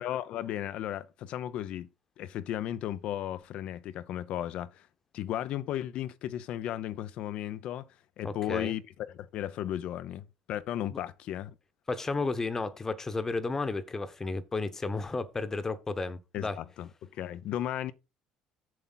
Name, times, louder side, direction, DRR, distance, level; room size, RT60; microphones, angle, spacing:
voice 1, 0.0-1.9 2.2-4.9 5.1-7.8 8.2-8.8 9.1-11.6 16.3-17.9, left 12 dB, 65° left, 0.8 m, -35 dB
voice 2, 8.2-8.7 11.9-16.6, left 3 dB, 20° left, 1.2 m, -33 dB
7.6 x 6.9 x 4.1 m
supercardioid pair, 90°, 2 cm